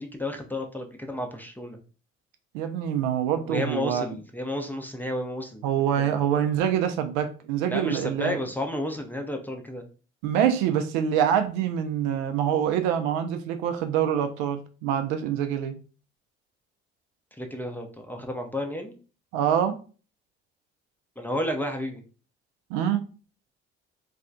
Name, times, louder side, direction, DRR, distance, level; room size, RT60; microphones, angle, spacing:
voice 1, 0.0-1.8 3.4-6.1 7.7-9.8 17.3-18.9 21.2-22.0, left 1 dB, 5° left, 0.5 m, -32 dB
voice 2, 2.5-4.1 5.6-8.4 10.2-15.8 19.3-19.8 22.7-23.1, right 9 dB, 70° right, 0.5 m, -25 dB
3.3 x 2.2 x 2.5 m
hypercardioid pair, 50°, 34 cm